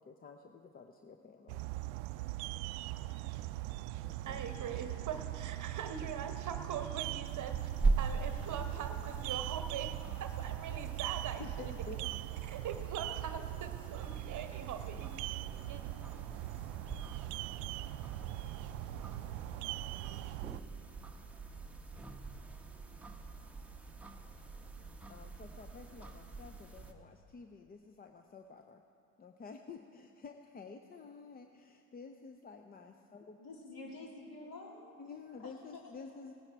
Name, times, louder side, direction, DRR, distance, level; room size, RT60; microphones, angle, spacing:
voice 1, 0.0-1.6 4.0-4.4 11.4-12.1 25.1-28.8 29.2-33.4 35.0-36.3, left 5 dB, 20° left, 6 dB, 0.5 m, -51 dB
sound 1, 1.5-20.6, right 17 dB, 65° right, 0.5 m, -41 dB
voice 2, 4.2-7.7 8.0-9.9 10.2-11.7 12.4-15.1 15.7-15.8, right 7 dB, 40° right, 7 dB, 1.0 m, -42 dB
sound 2, 7.3-26.9, right 3 dB, 5° right, 1.0 m, -42 dB
voice 3, 33.4-34.9 35.4-35.8, left 2 dB, 45° left, -2 dB, 3.2 m, -49 dB
18.5 x 9.7 x 4.5 m, 2.7 s
hypercardioid pair, 80°, 47 cm